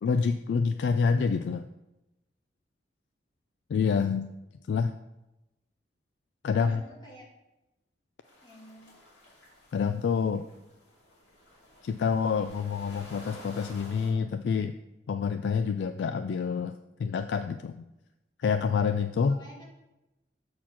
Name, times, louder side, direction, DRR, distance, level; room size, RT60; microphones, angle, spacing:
voice 1, 0.0-1.6 3.7-4.3 4.7-4.9 6.4-6.8 9.7-10.5 11.8-14.7 15.1-16.7 17.0-17.8 18.4-19.4, left 5 dB, 70° left, 9 dB, 0.3 m, -27 dB
voice 2, 6.6-7.3 8.4-8.9 19.2-19.6, equal, 25° left, -3 dB, 2.1 m, -49 dB
sound 1, 8.2-14.1, left 1 dB, 85° left, 2.5 m, -52 dB
7.5 x 4.3 x 5.8 m, 0.95 s
head